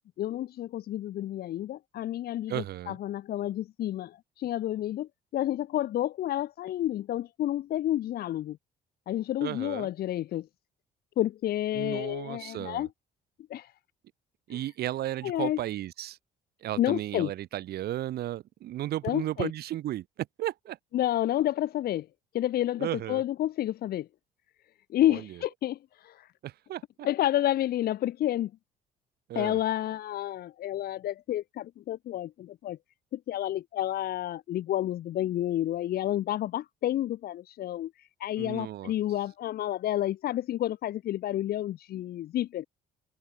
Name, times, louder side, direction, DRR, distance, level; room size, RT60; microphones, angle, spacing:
voice 1, 0.2-8.6 9.1-10.5 11.2-12.9 13.5-13.7 14.5-14.6 15.2-15.6 16.8-17.3 19.0-19.5 20.9-22.1 22.3-24.1 24.9-26.3 27.0-28.5 29.3-32.8 33.1-42.7, left 13 dB, 65° left, 3.0 m, -30 dB
voice 2, 2.5-3.0 9.4-9.9 11.7-12.9 14.5-16.2 16.6-20.8 22.8-23.2 25.1-25.4 26.4-27.1 29.3-29.6 38.4-38.9, right 13 dB, 70° right, 4.7 m, -34 dB
cardioid pair, 110°, 17 cm